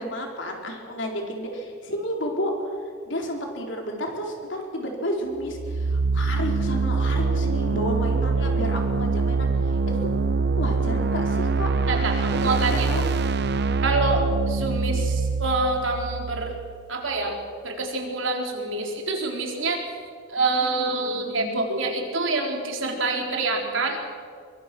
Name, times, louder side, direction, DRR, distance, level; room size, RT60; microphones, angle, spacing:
voice 1, 0.0-2.7 3.1-9.5 9.9-10.0 10.5-11.7 12.2-12.5 12.8-13.1, equal, 65° left, 1 dB, 4.2 m, -31 dB
sound 1, 5.4-17.2, right 4 dB, 55° right, 0.7 m, -24 dB
voice 2, 11.9-12.9 13.8-16.6 16.9-17.4 17.6-19.9 20.3-24.0, right 3 dB, 75° right, 2 dB, 4.0 m, -26 dB
23.0 x 22.5 x 6.2 m, 2.1 s
head